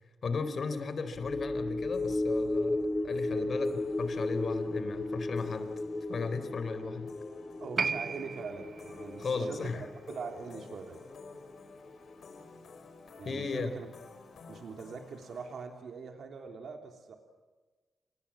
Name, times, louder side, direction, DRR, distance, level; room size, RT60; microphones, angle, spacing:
voice 1, 0.2-3.7 4.0-5.7 6.1-7.1 9.2-9.9 13.2-13.7, left 4 dB, 50° left, 10 dB, 4.0 m, -35 dB
sound 1, 1.1-11.8 12.1-12.2, left 2 dB, 25° left, 3.1 m, -35 dB
sound 2, 1.9-15.6, left 4 dB, 65° left, 5.0 m, -53 dB
voice 2, 7.6-9.7 10.1-11.0 13.1-13.9 14.5-17.2, right 5 dB, 65° right, 4 dB, 3.3 m, -42 dB
Piano, 7.8-14.7 15.0-15.1, right 5 dB, 40° right, 0.8 m, -40 dB
29.5 x 27.0 x 7.4 m, 1.3 s
wide cardioid pair, 130°, 0 cm